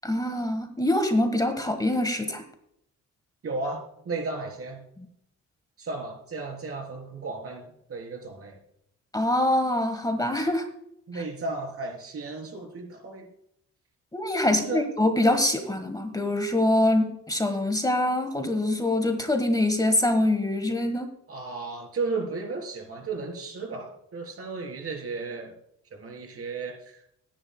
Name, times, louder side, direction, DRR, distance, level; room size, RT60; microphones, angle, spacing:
voice 1, 0.0-2.4 9.1-10.6 11.1-11.2 14.1-21.1, left 1 dB, 10° left, 6 dB, 1.4 m, -24 dB
voice 2, 3.4-4.9 5.8-8.6 11.1-13.3 14.5-14.9 21.3-25.5 25.9-27.2, right 3 dB, 50° right, 3 dB, 3.6 m, -34 dB
19.5 x 10.0 x 2.2 m, 0.75 s
cardioid pair, 90°, 30 cm